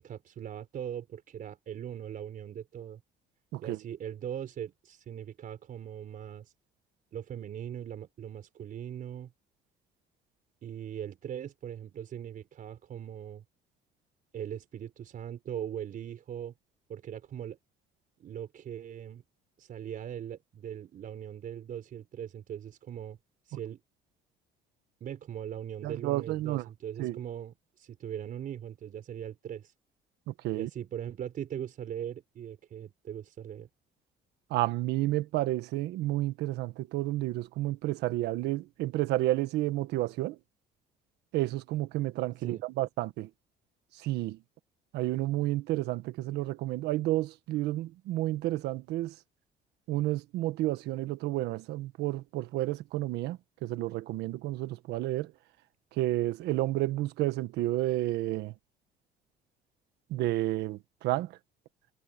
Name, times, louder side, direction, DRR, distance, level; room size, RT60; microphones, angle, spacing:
voice 1, 0.0-3.0 3.6-6.5 7.1-9.3 10.6-13.4 14.3-16.5 16.9-17.6 18.2-19.2 19.6-23.2 23.4-23.8 25.0-29.7 30.5-33.7 42.4-42.6, right 9 dB, 55° right, 4.5 m, -40 dB
voice 2, 25.8-26.7 27.0-27.2 30.3-30.7 34.5-40.4 41.3-43.3 44.0-44.4 44.9-49.1 49.9-55.3 56.0-58.5 60.1-61.4, right 16 dB, 85° right, 1.4 m, -31 dB
cardioid pair, 110°, 17 cm